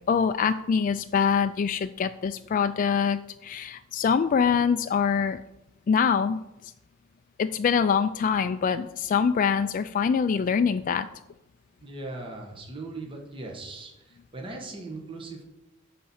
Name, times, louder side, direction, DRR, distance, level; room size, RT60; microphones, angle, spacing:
voice 1, 0.1-5.4 5.9-6.7 7.4-11.1, left 6 dB, 40° left, 9 dB, 0.3 m, -24 dB
voice 2, 11.8-15.4, right 2 dB, 25° right, 1 dB, 1.3 m, -39 dB
10.0 x 4.3 x 7.1 m, 0.92 s
head